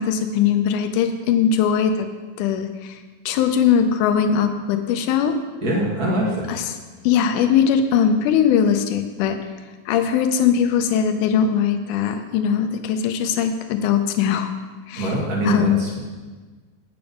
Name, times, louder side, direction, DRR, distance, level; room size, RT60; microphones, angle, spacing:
voice 1, 0.0-2.1 2.4-3.0 3.3-5.4 6.5-6.8 7.0-9.4 9.9-14.5 14.9-15.2 15.4-15.8, left 7 dB, 75° left, 7 dB, 2.1 m, -20 dB
voice 2, 5.6-6.5 15.0-16.0, right 1 dB, 40° right, -3 dB, 1.4 m, -23 dB
8.8 x 6.9 x 5.2 m, 1.3 s
omnidirectional pair, 3.8 m